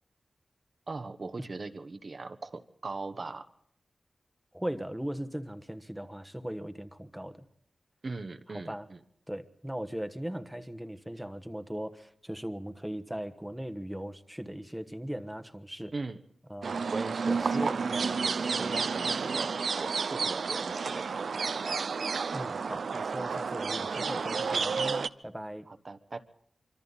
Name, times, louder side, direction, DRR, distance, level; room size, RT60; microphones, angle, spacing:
voice 1, 0.9-3.5 8.0-9.0 15.9-16.2 16.9-21.5 25.7-26.2, right 3 dB, 45° right, 8 dB, 1.1 m, -40 dB
voice 2, 4.5-7.4 8.5-8.9 9.3-15.9 16.5-16.8 17.3-17.8 22.3-25.7, equal, 5° right, 9 dB, 1.2 m, -38 dB
sound 1, 16.6-25.1, right 5 dB, 75° right, 0.7 m, -31 dB
25.0 x 25.0 x 4.1 m, 0.69 s
wide cardioid pair, 120°, 0 cm